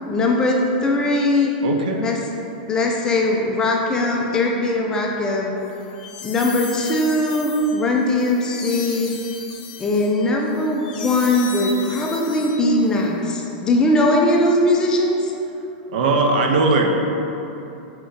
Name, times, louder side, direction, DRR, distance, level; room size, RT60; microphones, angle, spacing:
voice 1, 0.1-1.5 2.0-2.2 2.7-5.5 6.2-9.1 9.8-15.3, left 1 dB, 15° left, 0 dB, 0.3 m, -20 dB
voice 2, 1.6-2.1 15.9-16.9, right 3 dB, 70° right, 2 dB, 0.5 m, -19 dB
sound 1, 5.7-13.0, left 5 dB, 60° left, 0.6 m, -36 dB
4.2 x 2.6 x 3.6 m, 2.9 s
supercardioid pair, 155°, 5 cm